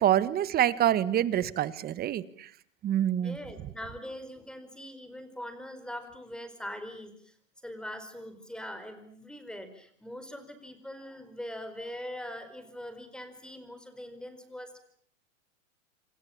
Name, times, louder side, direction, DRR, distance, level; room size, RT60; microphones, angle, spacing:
voice 1, 0.0-2.5 2.8-3.4, right 11 dB, 25° right, 17 dB, 1.4 m, -26 dB
voice 2, 3.2-7.3 7.6-14.8, equal, ahead, 10 dB, 4.7 m, -42 dB
27.5 x 27.0 x 7.3 m, 0.67 s
hypercardioid pair, 120°, 38 cm